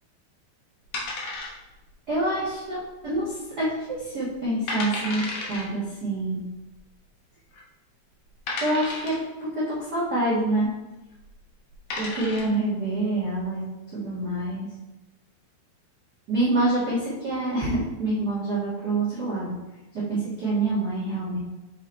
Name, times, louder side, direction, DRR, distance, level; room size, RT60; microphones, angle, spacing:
sound 1, 0.9-1.9 2.2-2.3 2.9-3.3 3.6-3.7 4.3-4.4 4.7-5.6 6.7-6.8 7.5-7.6 8.5-9.3 11.1-11.3 11.7-12.6, left 2 dB, 80° left, 1.4 m, -32 dB
voice 1, 2.1-6.4 8.6-10.8 12.0-13.6 13.9-14.7 16.3-19.5 19.9-21.4, right 2 dB, 85° right, -9 dB, 0.8 m, -26 dB
6.3 x 5.2 x 4.0 m, 1.0 s
omnidirectional pair, 5.0 m